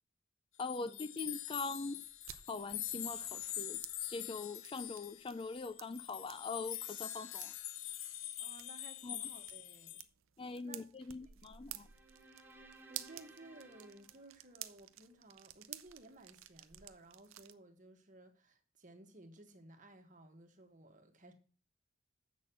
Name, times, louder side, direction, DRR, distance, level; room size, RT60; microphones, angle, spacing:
sound 1, 0.6-10.0, left 12 dB, 85° left, 0.9 m, -44 dB
voice 1, 0.6-2.0 2.5-3.8 4.1-7.5 9.0-9.3 10.4-11.9, left 3 dB, 25° left, 0.4 m, -42 dB
sound 2, 2.0-17.5, right 13 dB, 85° right, 0.6 m, -53 dB
voice 2, 8.4-10.0 10.6-10.8 11.2-11.5 12.9-21.3, right 2 dB, 40° right, 1.5 m, -57 dB
sound 3, 11.7-15.1, right 2 dB, 10° right, 1.2 m, -60 dB
7.5 x 6.4 x 7.5 m
head